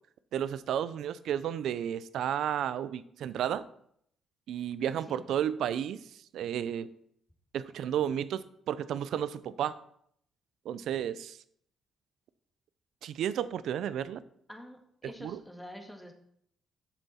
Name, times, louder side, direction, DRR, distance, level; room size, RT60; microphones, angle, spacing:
voice 1, 0.3-3.6 4.5-6.0 6.3-6.9 7.5-9.8 10.7-11.4 13.0-14.2 15.0-15.4, right 9 dB, 75° right, 16 dB, 0.4 m, -32 dB
voice 2, 14.5-16.1, equal, 5° left, 3 dB, 1.6 m, -47 dB
7.1 x 6.9 x 4.3 m, 0.69 s
supercardioid pair, 70°, 0 cm